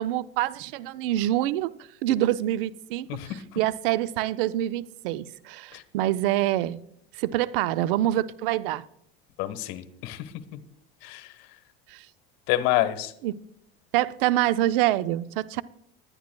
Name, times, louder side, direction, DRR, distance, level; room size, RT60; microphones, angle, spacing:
voice 1, 0.0-1.7 2.0-3.1 3.6-6.8 7.2-8.8 11.9-12.0 13.2-13.4 13.9-15.6, right 14 dB, 70° right, 15 dB, 0.6 m, -26 dB
voice 2, 3.1-3.6 5.7-5.8 9.4-10.6 11.0-11.5 12.5-13.1, left 14 dB, 65° left, 11 dB, 1.3 m, -29 dB
20.5 x 11.0 x 2.3 m, 0.72 s
hypercardioid pair, 85°, 29 cm